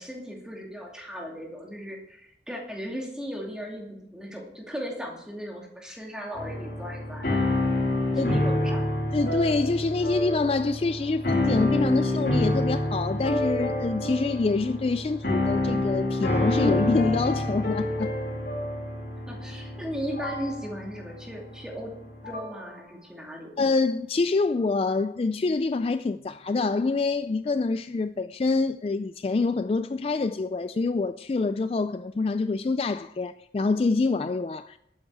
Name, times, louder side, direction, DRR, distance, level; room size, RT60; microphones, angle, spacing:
voice 1, 0.0-7.5 8.1-8.9 19.3-21.9 22.2-23.5, equal, 5° right, 2.5 m, -37 dB
sound 1, 6.4-22.6, left 1 dB, 60° left, 3.5 m, -28 dB
voice 2, 9.1-18.1 23.6-34.8, left 3 dB, 35° left, 0.3 m, -26 dB
12.5 x 9.2 x 4.8 m
head